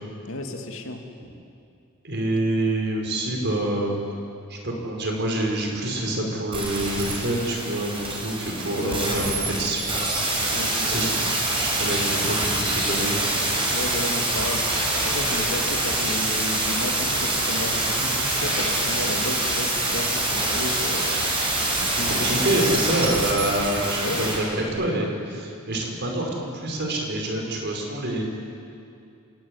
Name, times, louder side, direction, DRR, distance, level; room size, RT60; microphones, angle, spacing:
voice 1, 0.3-1.0 8.7-9.2 10.4-11.1 13.7-14.7 15.0-21.2 21.8-22.4 24.0-24.3, left 2 dB, 60° left, 4 dB, 2.5 m, -33 dB
voice 2, 2.0-3.9 4.5-10.2 10.9-13.2 22.1-28.2, right 1 dB, 50° right, 1 dB, 5.3 m, -26 dB
sound 1, 6.5-24.4 24.7-24.8, right 2 dB, 25° right, 6.1 m, -25 dB
28.0 x 17.5 x 10.0 m, 2.5 s
head